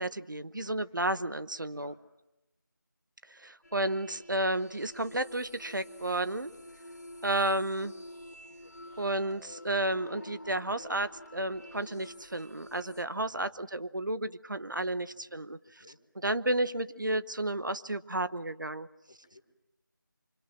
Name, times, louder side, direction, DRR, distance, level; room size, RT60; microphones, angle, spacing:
voice 1, 0.0-1.9 3.3-6.5 7.2-7.9 9.0-15.6 16.2-18.9, right 1 dB, 70° right, 13 dB, 1.0 m, -32 dB
voice 2, 0.6-1.0 1.7-2.0 6.4-6.8 8.5-9.0 13.3-13.7 15.0-15.4 15.8-16.0 19.1-19.4, left 2 dB, 15° left, 4 dB, 1.3 m, -61 dB
sound 1, 3.6-13.0, left 1 dB, 50° left, 2.0 m, -49 dB
25.5 x 24.5 x 7.7 m, 0.93 s
figure-of-eight pair, 175°, 11 cm